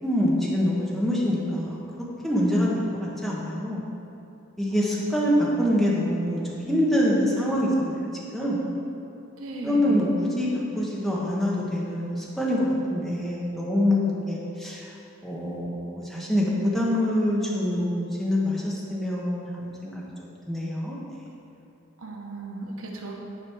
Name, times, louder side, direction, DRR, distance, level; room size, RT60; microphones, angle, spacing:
voice 1, 0.0-1.8 2.2-3.8 4.6-8.1 8.3-8.6 9.6-10.1 10.4-14.0 14.3-14.9 15.2-21.0, left 1 dB, ahead, -6 dB, 1.3 m, -25 dB
voice 2, 4.7-5.1 9.4-10.0 22.0-23.2, right 2 dB, 75° right, 0 dB, 1.1 m, -37 dB
10.0 x 5.2 x 4.7 m, 3.0 s
head